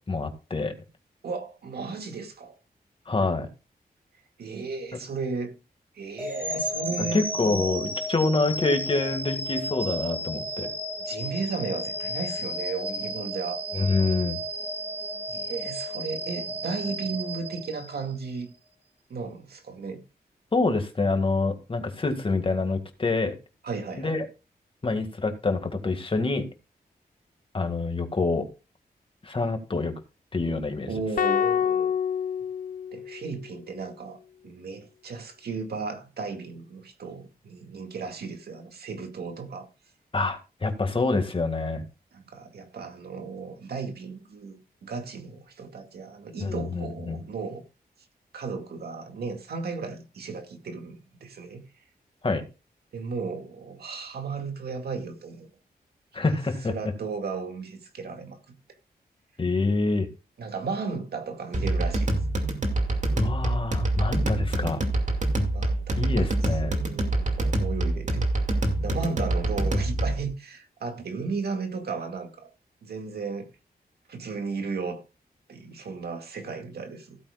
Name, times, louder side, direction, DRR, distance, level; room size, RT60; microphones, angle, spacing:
voice 1, 0.1-0.7 3.1-3.5 7.0-10.7 13.7-14.4 20.5-23.3 24.0-24.3 24.8-26.4 27.5-28.5 29.2-29.9 30.3-30.9 40.1-41.8 46.4-47.2 52.2-52.4 56.1-56.7 59.4-60.1 63.1-64.8 66.0-66.7, left 3 dB, 35° left, 2.1 m, -26 dB
voice 2, 1.2-2.6 4.4-5.5 5.9-7.3 11.0-13.6 15.3-18.5 19.1-20.0 23.6-24.1 30.9-31.9 32.9-34.2 34.4-39.7 42.1-47.6 48.3-51.6 52.9-55.5 56.7-58.6 60.4-62.2 65.5-68.3 68.8-72.5 72.8-73.5 74.1-75.0 75.5-77.2, right 4 dB, 85° right, 2.1 m, -35 dB
sound 1, 6.2-18.3, equal, 10° right, 2.0 m, -33 dB
sound 2, 31.2-33.5, left 8 dB, 60° left, 0.4 m, -27 dB
sound 3, 61.5-70.3, right 1 dB, 50° right, 2.5 m, -26 dB
16.5 x 8.6 x 2.4 m
wide cardioid pair, 110°, 16 cm